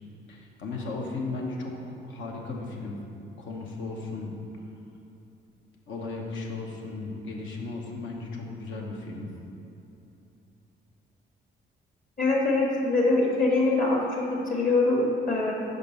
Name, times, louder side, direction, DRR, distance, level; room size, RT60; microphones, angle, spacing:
voice 1, 0.3-3.0 3.4-4.3 5.9-9.3, left 3 dB, 75° left, 0 dB, 1.1 m, -35 dB
voice 2, 12.2-15.5, left 2 dB, 45° left, -2 dB, 1.5 m, -24 dB
5.3 x 5.0 x 5.3 m, 2.9 s
cardioid pair, 90°, 20 cm